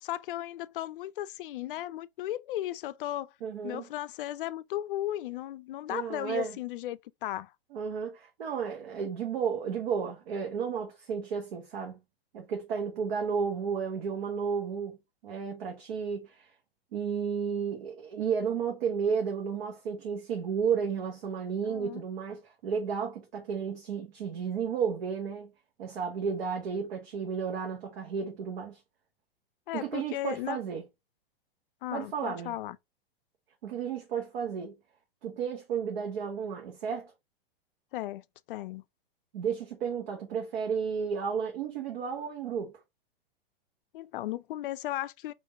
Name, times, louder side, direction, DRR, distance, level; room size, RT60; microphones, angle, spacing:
voice 1, 0.0-3.3 3.6-7.5 21.7-22.0 29.7-30.6 31.8-32.8 37.9-38.8 43.9-45.3, left 14 dB, 60° left, 0.4 m, -36 dB
voice 2, 3.4-3.9 5.9-6.6 7.7-12.0 12.3-15.0 15.2-16.5 16.9-25.5 25.8-28.8 29.7-30.8 31.9-32.6 33.6-34.7 35.2-37.1 39.3-42.7, right 6 dB, 65° right, 1.1 m, -32 dB
3.5 x 2.6 x 3.5 m
hypercardioid pair, 115°, 30 cm